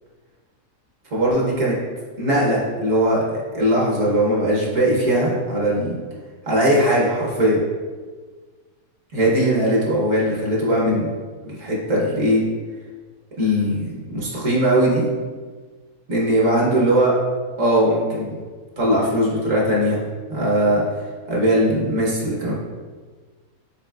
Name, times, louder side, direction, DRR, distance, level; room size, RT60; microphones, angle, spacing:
voice 1, 1.1-1.8 2.2-6.0 6.5-7.6 9.1-11.1 11.4-12.4 13.4-15.0 16.1-17.1 17.6-18.4 18.8-20.8 21.3-22.5, right 1 dB, 60° right, -5 dB, 1.3 m, -20 dB
5.8 x 3.9 x 2.3 m, 1.4 s
omnidirectional pair, 1.6 m